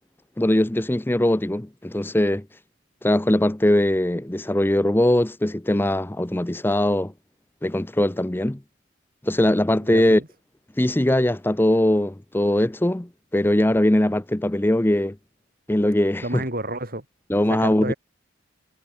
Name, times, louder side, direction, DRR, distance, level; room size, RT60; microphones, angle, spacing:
voice 1, 0.4-2.5 3.0-7.1 7.6-8.6 9.2-10.2 10.8-15.2 15.7-16.4 17.3-17.9, left 1 dB, 10° left, 0.6 m, -21 dB
voice 2, 9.8-10.3 16.2-17.0 17.5-17.9, right 2 dB, 45° right, 5.7 m, -30 dB
head